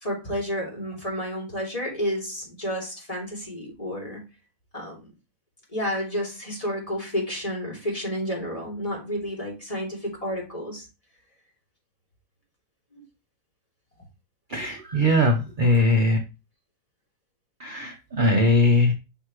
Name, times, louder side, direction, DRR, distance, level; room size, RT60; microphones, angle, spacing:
voice 1, 0.0-4.2 4.7-5.1 5.7-10.9 12.9-13.0, equal, 25° left, -2 dB, 3.1 m, -31 dB
voice 2, 14.5-16.2 17.6-18.9, left 1 dB, 40° right, 3 dB, 0.9 m, -20 dB
6.0 x 5.8 x 3.2 m, 0.28 s
omnidirectional pair, 1.6 m